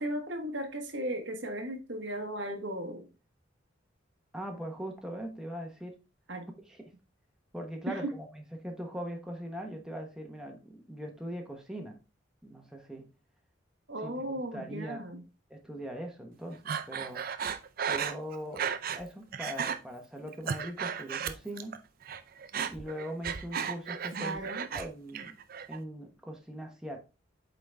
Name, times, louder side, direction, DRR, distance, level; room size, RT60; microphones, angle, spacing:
voice 1, 0.0-3.1 6.3-6.5 7.9-8.1 13.9-15.2 24.1-24.7, right 1 dB, 65° right, 1.3 m, -36 dB
voice 2, 4.3-5.9 6.7-6.8 7.5-12.0 12.4-13.1 14.0-15.0 15.5-17.3 17.9-18.7 18.9-21.8 22.7-24.4 24.7-25.3 25.7-27.0, equal, 5° right, 1.0 m, -40 dB
Breathing, 16.7-19.0 19.3-19.8 20.2-21.8 22.0-24.9 25.1-25.8, right 7 dB, 50° right, 0.6 m, -34 dB
8.3 x 4.0 x 3.4 m
head